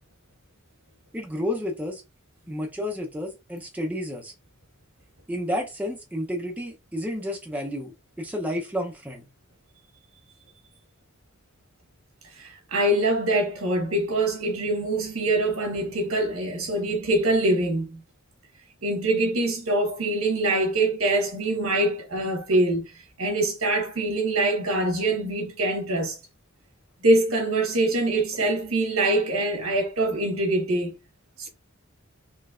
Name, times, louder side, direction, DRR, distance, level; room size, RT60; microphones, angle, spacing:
voice 1, 1.1-2.0 2.5-4.3 5.3-7.9 8.2-9.3, left 1 dB, 5° right, 0.6 m, -31 dB
voice 2, 12.4-18.0 18.8-22.9 23.2-26.2 27.0-31.0, right 2 dB, 80° right, 1.4 m, -24 dB
4.1 x 3.3 x 2.4 m
head